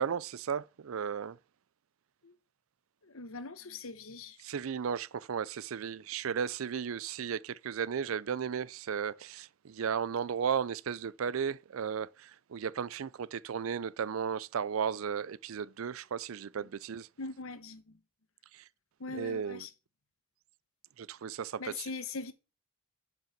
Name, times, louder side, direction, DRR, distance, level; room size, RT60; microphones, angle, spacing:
voice 1, 0.0-1.4 4.4-17.1 18.5-18.7 19.1-19.6 21.0-21.9, right 7 dB, 75° right, 0.4 m, -35 dB
voice 2, 3.0-4.4 16.6-16.7 17.2-18.0 19.0-19.7 21.6-22.3, left 3 dB, 80° left, 1.1 m, -41 dB
8.8 x 5.6 x 5.9 m
head